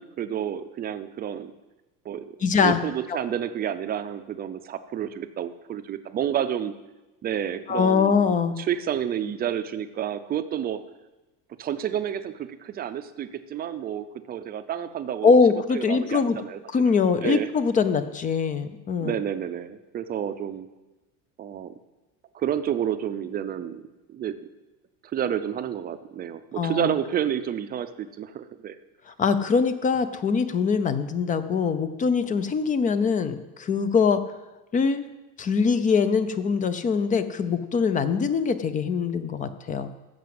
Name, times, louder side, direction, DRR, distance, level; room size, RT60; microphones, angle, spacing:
voice 1, 0.0-1.5 2.0-6.7 7.2-8.2 8.6-10.8 11.6-15.4 15.7-17.0 17.2-17.5 19.0-20.7 21.4-21.7 22.3-24.4 25.1-28.8, right 9 dB, 25° right, 11 dB, 0.6 m, -30 dB
voice 2, 2.4-2.8 3.1-3.2 7.7-8.6 15.2-16.4 16.7-19.1 26.6-26.9 29.1-34.2 34.7-35.0 35.4-39.9, left 5 dB, 20° left, 12 dB, 0.6 m, -23 dB
15.0 x 6.1 x 7.7 m, 1.1 s
cardioid pair, 160°, 36 cm